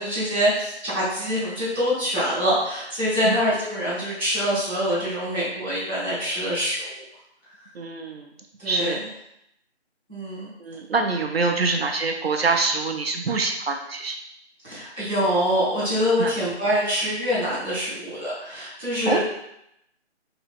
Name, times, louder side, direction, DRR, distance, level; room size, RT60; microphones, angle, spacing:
voice 1, 0.0-7.0 8.6-8.9 10.1-10.5 14.6-19.2, equal, 10° left, -19 dB, 1.0 m, -25 dB
voice 2, 7.7-8.3 8.6-9.0 10.6-14.2 16.2-16.3 19.0-19.2, right 3 dB, 65° right, 3 dB, 0.5 m, -25 dB
2.8 x 2.7 x 3.6 m, 0.78 s
hypercardioid pair, 175°, 34 cm